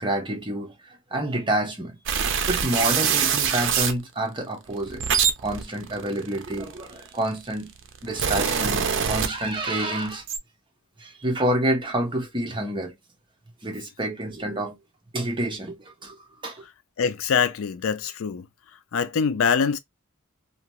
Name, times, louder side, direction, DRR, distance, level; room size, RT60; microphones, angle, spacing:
voice 1, 0.0-2.0 2.5-5.1 5.4-7.7 8.0-10.2 11.0-12.9 13.6-14.8 15.1-16.6, right 1 dB, 25° right, 0.8 m, -28 dB
sound 1, 2.1-4.0 4.7-7.1 7.8-9.8 10.1-10.4, right 7 dB, 60° right, 0.5 m, -24 dB
voice 2, 17.0-18.5 18.9-19.8, left 6 dB, 70° left, 0.4 m, -24 dB
2.7 x 2.3 x 2.9 m
head